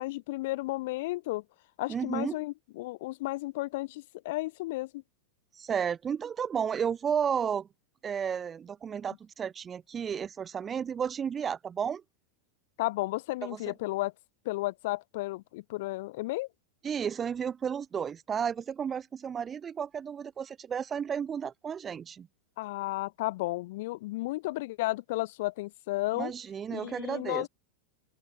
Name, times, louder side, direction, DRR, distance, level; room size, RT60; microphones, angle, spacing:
voice 1, 0.0-1.4 1.8-5.0 12.8-14.1 14.4-16.5 22.6-26.3 26.7-27.5, left 19 dB, 50° left, 6.6 m, -33 dB
voice 2, 1.9-2.4 5.6-7.7 8.0-12.0 13.5-13.7 16.8-22.3 26.2-27.5, right 7 dB, 20° right, 4.1 m, -33 dB
open air
figure-of-eight pair, 90°, 0 cm